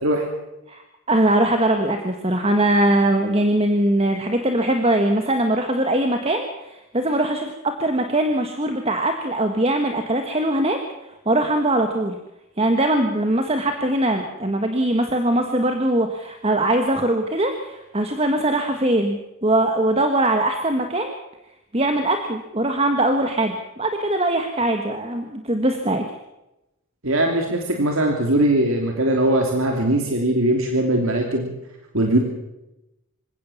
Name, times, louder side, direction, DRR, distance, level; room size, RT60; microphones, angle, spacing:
voice 1, 1.1-10.8 11.2-12.2 12.6-21.2 21.7-26.0, right 1 dB, 25° right, 5 dB, 1.5 m, -21 dB
voice 2, 27.0-31.5 31.9-32.2, right 1 dB, 65° right, 2 dB, 3.0 m, -20 dB
26.0 x 16.5 x 7.2 m, 0.93 s
head